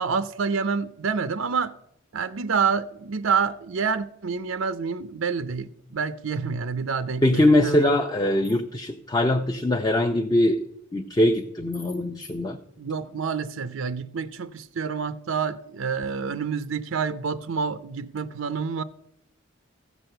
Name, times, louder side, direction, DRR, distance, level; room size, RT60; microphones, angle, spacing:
voice 1, 0.0-1.7 2.1-7.9 12.8-18.8, right 5 dB, 90° right, 0.5 m, -28 dB
voice 2, 7.2-10.6 10.9-12.6, left 1 dB, 20° left, 0.5 m, -22 dB
15.0 x 6.2 x 6.6 m
head